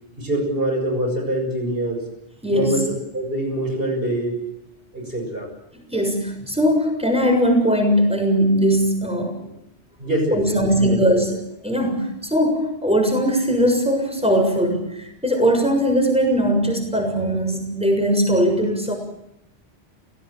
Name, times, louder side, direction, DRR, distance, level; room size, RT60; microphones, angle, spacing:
voice 1, 0.2-2.0 2.5-4.4 4.9-5.5 10.0-11.0, right 1 dB, 60° right, 3 dB, 7.6 m, -24 dB
voice 2, 2.4-2.8 5.9-9.5 10.3-11.4 11.6-18.9, equal, 5° right, 4 dB, 7.0 m, -20 dB
29.5 x 17.5 x 9.1 m, 0.84 s
omnidirectional pair, 1.1 m